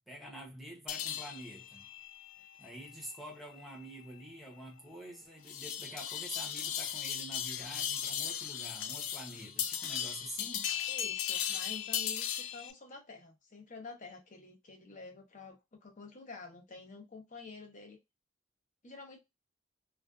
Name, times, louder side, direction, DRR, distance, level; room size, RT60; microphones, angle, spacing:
voice 1, 0.1-1.8 2.6-10.8, right 1 dB, ahead, 0.7 m, -47 dB
sound 1, 0.9-12.7, left 9 dB, 75° left, 0.4 m, -38 dB
voice 2, 10.9-18.0 18.8-19.2, left 4 dB, 40° left, 0.7 m, -49 dB
2.5 x 2.2 x 2.3 m
head